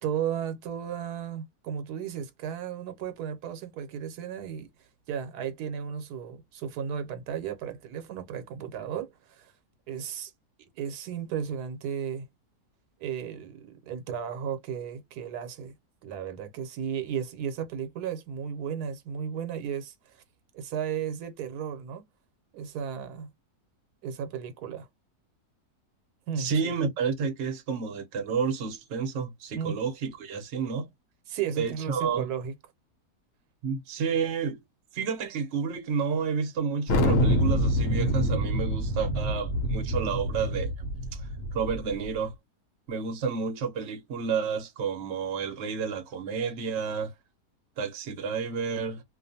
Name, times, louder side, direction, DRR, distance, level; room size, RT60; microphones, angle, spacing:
voice 1, 0.0-4.7 5.1-9.5 9.9-10.3 10.8-12.3 13.0-15.7 16.0-20.2 20.5-22.1 22.5-23.3 24.0-24.9 26.3-26.7 29.5-29.8 31.3-32.5, right 8 dB, 85° right, 1.2 m, -34 dB
voice 2, 26.4-30.9 31.6-32.3 33.6-34.6 34.9-40.7 41.5-42.3 42.9-47.1 47.8-49.0, right 6 dB, 55° right, 0.9 m, -30 dB
Thunder, 36.9-42.0, equal, 65° left, 1.0 m, -26 dB
2.5 x 2.3 x 2.6 m
omnidirectional pair, 1.7 m